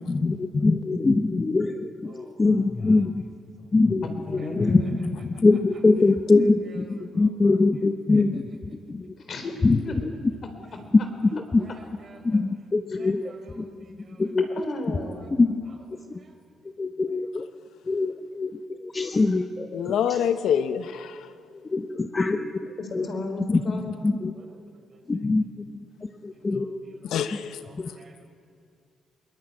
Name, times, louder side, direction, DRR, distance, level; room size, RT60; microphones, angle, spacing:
voice 1, 0.0-3.2 3.7-8.5 8.9-9.2 9.6-10.1 11.2-11.7 12.2-14.5 15.4-15.6 16.8-17.5 17.9-20.2 21.5-23.1 23.5-23.6 24.0-24.3 25.1-26.8 27.7-27.9, left 3 dB, 25° left, 7 dB, 1.0 m, -24 dB
voice 2, 2.0-3.3 3.6-3.7 4.4-5.1 5.3-8.6 11.6-12.4 12.9-14.6 14.9-15.3 15.6-16.5 23.0-23.2 24.3-25.0 26.3-28.3, right 3 dB, 45° right, 5 dB, 4.6 m, -54 dB
voice 3, 4.0-4.9 9.2-9.5 9.8-10.0 14.6-15.4 22.8-24.1, left 2 dB, 50° left, 6 dB, 4.1 m, -34 dB
voice 4, 19.7-21.3 27.0-27.6, left 8 dB, 80° left, 10 dB, 1.0 m, -26 dB
21.5 x 19.5 x 9.8 m, 2.3 s
cardioid pair, 90°, 0 cm